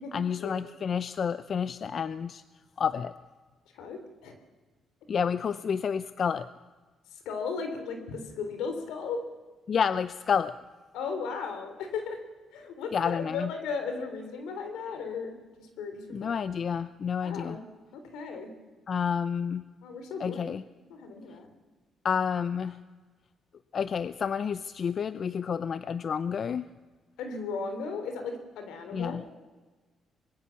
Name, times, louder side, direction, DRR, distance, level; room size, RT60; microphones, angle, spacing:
voice 1, 0.1-2.4 2.8-3.1 5.1-6.5 9.7-10.5 12.9-13.5 16.1-17.6 18.9-19.6 20.2-20.6 22.0-22.8 23.7-26.7 28.9-29.2, left 7 dB, 50° left, 14 dB, 0.7 m, -29 dB
voice 2, 3.7-4.3 7.3-9.2 10.9-12.2 12.5-16.3 17.2-17.6 17.9-18.5 19.8-20.5 20.9-21.5 27.2-29.3, left 5 dB, 90° left, 6 dB, 3.6 m, -36 dB
25.0 x 21.5 x 7.1 m, 1.3 s
cardioid pair, 90°, 0 cm